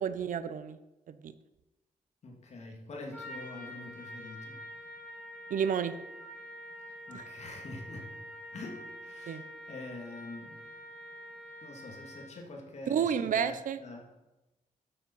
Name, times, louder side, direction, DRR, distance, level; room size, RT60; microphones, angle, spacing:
voice 1, 0.0-0.8 1.1-1.3 5.5-5.9 7.1-7.3 9.3-9.4 12.9-13.8, right 7 dB, 70° right, 12 dB, 0.7 m, -30 dB
voice 2, 2.2-4.6 6.8-8.1 8.5-10.7 11.6-14.1, left 2 dB, 50° left, 1 dB, 2.7 m, -45 dB
Trumpet, 3.1-12.5, equal, 10° left, 3.3 m, -46 dB
12.0 x 7.0 x 5.5 m, 1.0 s
wide cardioid pair, 140°, 14 cm